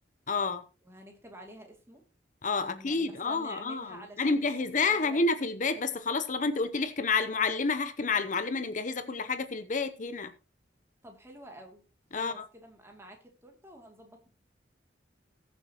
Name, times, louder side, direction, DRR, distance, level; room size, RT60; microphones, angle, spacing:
voice 1, 0.3-0.6 2.4-10.3 12.1-12.4, left 4 dB, 45° left, 0.8 m, -29 dB
voice 2, 0.8-2.0 2.6-5.3 11.0-11.8 12.1-14.3, right 1 dB, 15° right, 2.6 m, -49 dB
20.5 x 7.1 x 2.9 m
head